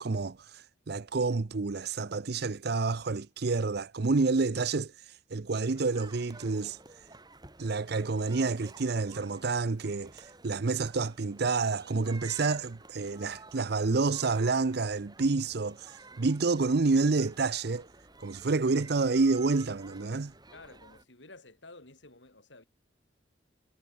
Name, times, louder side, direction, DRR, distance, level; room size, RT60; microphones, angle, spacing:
voice 1, 0.0-4.9 5.3-6.8 7.6-17.9 18.2-20.3, right 3 dB, 60° right, 0.7 m, -29 dB
sound 1, 5.7-21.0, right 3 dB, 20° right, 6.1 m, -53 dB
voice 2, 20.5-22.7, left 2 dB, 75° left, 5.9 m, -52 dB
head